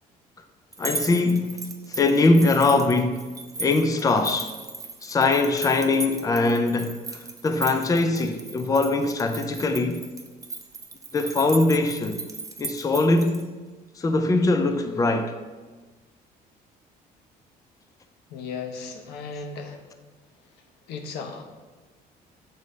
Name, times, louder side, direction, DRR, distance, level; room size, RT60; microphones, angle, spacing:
sound 1, 0.7-13.4, right 3 dB, 20° right, 0.6 m, -37 dB
voice 1, 0.8-3.3 3.6-4.5 5.0-10.0 11.1-12.2 12.6-13.5 14.0-15.3, left 3 dB, 20° left, 0.5 m, -22 dB
voice 2, 18.3-19.8 20.9-21.4, left 5 dB, 90° left, 0.9 m, -35 dB
6.5 x 4.1 x 5.1 m
cardioid pair, 110°, 17 cm